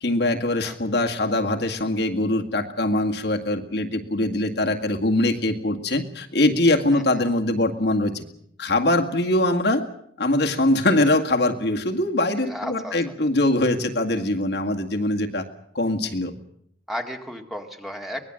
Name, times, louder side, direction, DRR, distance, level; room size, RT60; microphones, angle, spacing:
voice 1, 0.0-8.2 8.6-9.8 10.2-15.4 15.7-16.3, left 1 dB, 60° left, 2 dB, 2.0 m, -22 dB
voice 2, 12.4-13.0 16.9-18.2, equal, ahead, 3 dB, 2.0 m, -33 dB
24.0 x 19.5 x 7.7 m, 0.69 s
head